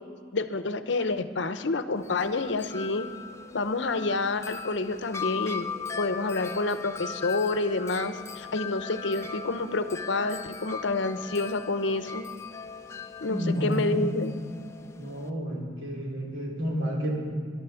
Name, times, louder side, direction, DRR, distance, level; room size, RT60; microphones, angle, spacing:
voice 1, 0.3-3.1 3.5-5.7 6.0-12.2 13.2-14.4, left 3 dB, 65° left, 11 dB, 0.7 m, -28 dB
Wind chime, 2.0-15.3, left 6 dB, 15° left, 0.5 m, -39 dB
voice 2, 13.3-14.0 15.0-17.1, equal, 85° right, -2 dB, 3.8 m, -30 dB
14.0 x 11.5 x 7.0 m, 2.2 s
head